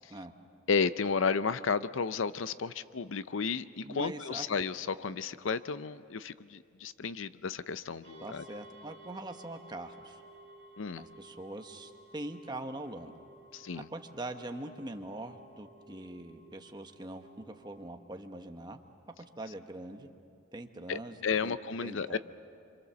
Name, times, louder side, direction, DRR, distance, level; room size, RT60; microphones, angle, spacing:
voice 1, 0.7-8.4 10.8-11.0 13.5-13.9 20.9-22.2, left 5 dB, 75° left, 14 dB, 0.6 m, -33 dB
voice 2, 3.8-4.4 8.2-10.2 11.0-13.2 13.7-18.8 19.4-20.1 20.5-21.2 21.4-22.2, right 1 dB, 20° right, 5 dB, 1.1 m, -43 dB
sound 1, 8.0-17.9, right 2 dB, 55° right, 3.2 m, -56 dB
26.5 x 25.5 x 7.0 m, 2.4 s
head